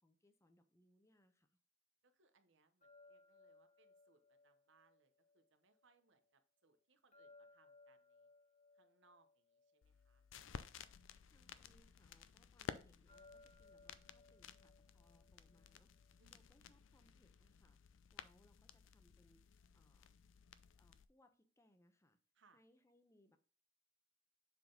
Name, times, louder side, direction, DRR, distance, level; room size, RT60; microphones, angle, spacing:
voice 1, 0.0-1.6 11.3-20.2 20.7-22.2 22.5-23.4, left 1 dB, 15° left, 7 dB, 0.8 m, -74 dB
voice 2, 2.0-8.3 8.7-10.3 16.2-16.4 22.3-22.6, right 4 dB, 65° right, 9 dB, 0.9 m, -75 dB
sound 1, 2.8-5.9 7.1-10.6 13.1-16.2, left 3 dB, 35° left, 1.4 m, -67 dB
sound 2, 9.8-21.1, left 6 dB, 70° left, 0.5 m, -55 dB
7.2 x 3.9 x 3.8 m, 0.38 s
head